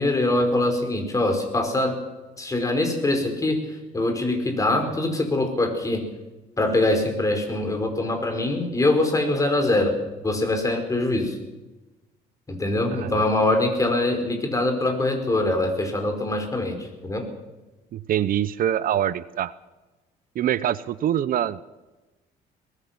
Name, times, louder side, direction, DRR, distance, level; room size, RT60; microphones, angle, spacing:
voice 1, 0.0-1.9 2.4-3.6 3.9-6.0 6.6-10.0 10.2-11.4 12.5-17.2, left 2 dB, 20° left, 5 dB, 5.3 m, -23 dB
voice 2, 12.9-13.2 17.9-19.5 20.4-21.6, right 11 dB, 60° right, 16 dB, 0.8 m, -24 dB
23.5 x 19.5 x 6.1 m, 1.1 s
cardioid pair, 110°, 17 cm